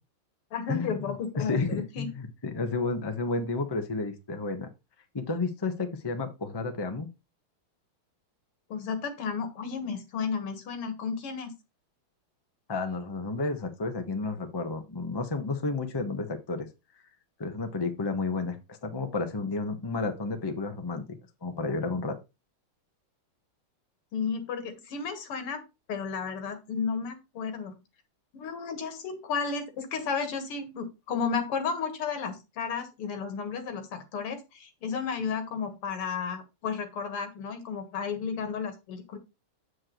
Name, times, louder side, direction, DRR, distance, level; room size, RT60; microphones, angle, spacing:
voice 1, 0.5-2.1 8.7-11.5 24.1-25.6 25.9-27.8 28.3-39.2, left 6 dB, 90° left, 8 dB, 2.5 m, -33 dB
voice 2, 1.4-4.7 5.1-7.1 12.7-16.7 17.4-18.6 18.8-22.1, left 3 dB, 25° left, 6 dB, 0.5 m, -31 dB
7.7 x 7.5 x 3.0 m, 0.25 s
omnidirectional pair, 2.4 m